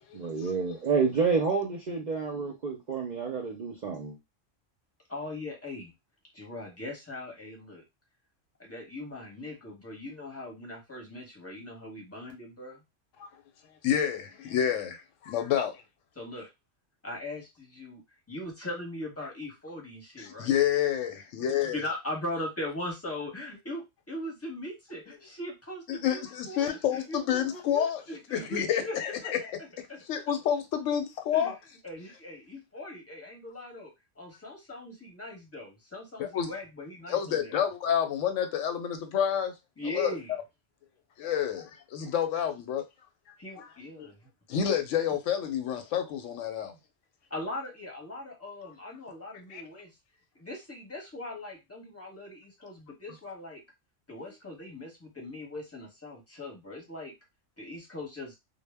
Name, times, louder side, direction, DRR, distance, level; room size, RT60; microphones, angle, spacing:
voice 1, 0.1-4.2, right 5 dB, 55° right, 0.5 m, -29 dB
voice 2, 5.1-5.9 6.3-7.8 8.6-12.8 16.2-16.5 17.0-18.0 18.3-20.5 21.7-29.0 29.2-29.3 29.9-30.0 30.3-30.4 31.3-31.5 31.8-33.9 34.2-37.6 39.8-40.3 43.4-44.2 47.3-49.9 50.3-53.6 54.1-57.1 57.6-58.3, left 1 dB, 15° left, 0.7 m, -40 dB
voice 3, 13.8-15.8 20.2-21.8 25.9-28.0 28.3-29.4 29.8-31.6 36.2-36.5 37.1-39.5 39.9-40.4 41.2-42.8 43.6-43.7 44.0-44.1 44.5-46.7 49.5-49.6, left 9 dB, 85° left, 0.9 m, -29 dB
2.1 x 2.0 x 3.3 m
omnidirectional pair, 1.3 m